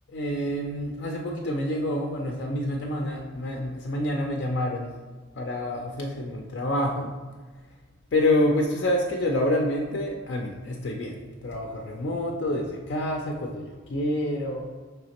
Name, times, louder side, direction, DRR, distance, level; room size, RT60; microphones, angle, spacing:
voice 1, 0.1-4.9 5.4-7.1 8.1-14.7, left 1 dB, 65° left, 0 dB, 0.4 m, -27 dB
4.9 x 3.3 x 2.9 m, 1.3 s
head